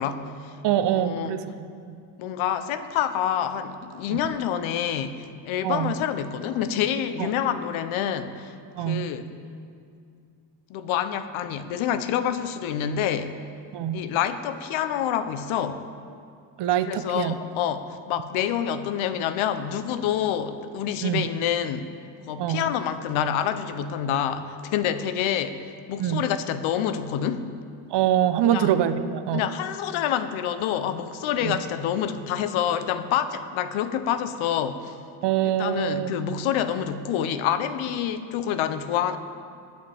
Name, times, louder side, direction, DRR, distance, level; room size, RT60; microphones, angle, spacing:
voice 1, 0.0-0.6 0.8-1.4 2.2-9.3 10.7-13.4 13.9-15.8 16.9-21.9 22.3-27.5 28.4-28.7 29.3-35.0 35.6-39.2, left 9 dB, 90° left, 11 dB, 0.8 m, -27 dB
voice 2, 0.6-2.0 4.1-4.2 5.6-5.9 7.2-7.3 8.7-9.1 13.7-14.0 16.6-17.3 21.0-21.2 22.4-22.7 26.0-26.2 27.9-29.4 31.4-31.6 35.2-36.2, right 11 dB, 60° right, 10 dB, 0.8 m, -24 dB
22.0 x 8.0 x 3.4 m, 2.3 s
cardioid pair, 110°, 47 cm